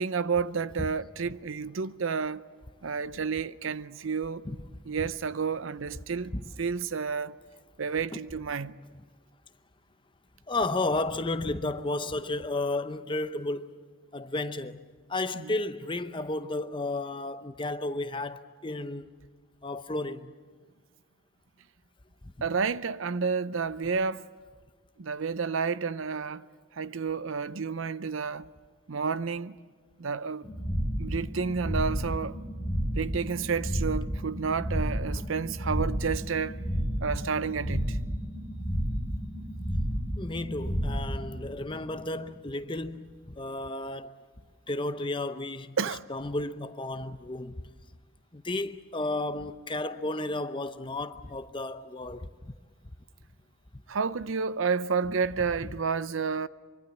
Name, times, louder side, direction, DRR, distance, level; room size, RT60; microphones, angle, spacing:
voice 1, 0.0-2.4 2.8-4.4 4.8-7.4 7.8-8.7 15.3-15.5 22.4-24.2 25.0-26.4 26.8-28.5 28.9-29.5 30.0-30.5 31.0-32.4 32.9-36.6 37.0-38.0 45.8-46.1 53.9-56.5, right 5 dB, 70° right, 0.6 m, -30 dB
voice 2, 10.5-13.7 14.1-14.8 15.1-19.1 19.6-20.3 40.2-43.1 43.4-44.2 44.7-45.8 46.1-47.6 48.3-52.5, left 2 dB, 25° left, 0.7 m, -33 dB
sound 1, 30.4-42.2, equal, 5° right, 5.7 m, -32 dB
24.5 x 24.0 x 7.1 m
head